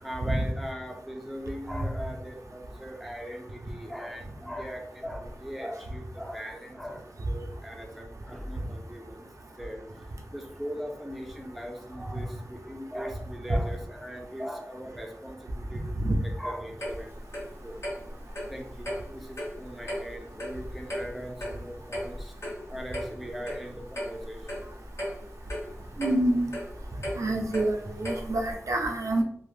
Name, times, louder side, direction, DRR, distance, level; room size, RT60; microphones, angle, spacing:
voice 1, 0.0-9.2 9.6-9.8 10.3-15.9 16.2-17.2 17.6-17.8 18.5-22.3 22.7-24.4, equal, ahead, 1 dB, 0.6 m, -39 dB
Clock, 16.8-28.5, equal, 60° left, 1.2 m, -37 dB
voice 2, 26.0-26.5 27.2-29.2, right 1 dB, 85° right, 2 dB, 0.4 m, -27 dB
3.2 x 2.0 x 2.5 m, 0.63 s
wide cardioid pair, 75°, 5 cm